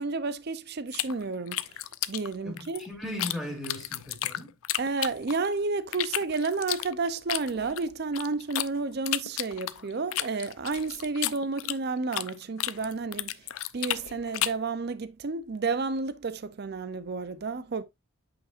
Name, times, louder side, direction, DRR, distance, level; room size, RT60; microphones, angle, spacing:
voice 1, 0.0-1.8 2.1-2.8 4.8-13.3 13.7-17.8, right 4 dB, 45° right, 0.5 m, -31 dB
sound 1, 0.9-3.4 3.6-5.5 5.9-8.7 9.1-12.3 12.6-14.7, left 14 dB, 70° left, 0.5 m, -32 dB
voice 2, 2.4-4.5, left 1 dB, ahead, 2.5 m, -37 dB
8.6 x 5.2 x 2.5 m
head